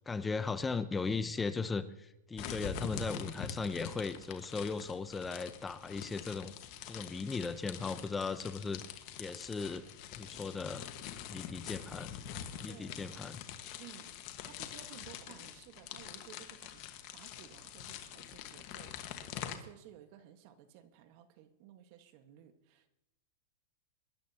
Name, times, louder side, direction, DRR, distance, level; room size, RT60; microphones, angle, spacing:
voice 1, 0.1-6.5 6.8-8.8 9.2-9.8 10.2-10.9 11.3-12.1 12.6-13.4, left 4 dB, 15° left, 12 dB, 0.6 m, -37 dB
sound 1, 2.4-19.5, left 9 dB, 45° left, 1.5 m, -45 dB
voice 2, 12.7-13.2 13.8-14.1 14.4-22.9, right 11 dB, 50° right, 9 dB, 1.6 m, -56 dB
24.0 x 11.5 x 2.9 m, 0.90 s
hypercardioid pair, 130°, 0 cm